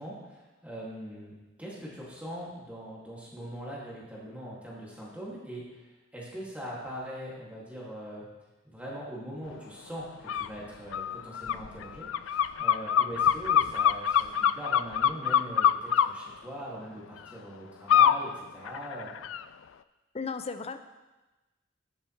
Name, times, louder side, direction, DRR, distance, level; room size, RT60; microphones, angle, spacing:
voice 1, 0.0-5.8 6.1-8.3 8.6-19.1, equal, 5° right, -6 dB, 2.5 m, -41 dB
sound 1, 10.3-10.5 10.9-16.1 17.9-18.2 18.6-19.4, left 9 dB, 85° left, 0.3 m, -24 dB
voice 2, 20.1-20.8, left 5 dB, 35° left, 10 dB, 0.5 m, -35 dB
13.5 x 7.3 x 3.3 m, 1.1 s
head